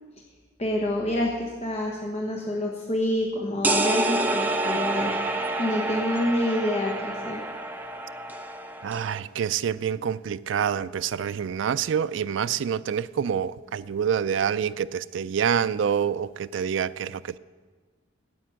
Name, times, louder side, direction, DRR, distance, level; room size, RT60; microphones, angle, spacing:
voice 1, 0.6-5.2 5.6-7.5, left 1 dB, 35° left, -1 dB, 1.1 m, -27 dB
sound 1, 3.6-9.2, right 2 dB, 10° right, 0.7 m, -28 dB
voice 2, 8.8-17.4, right 8 dB, 65° right, 15 dB, 0.4 m, -27 dB
9.4 x 8.5 x 9.0 m, 1.4 s
head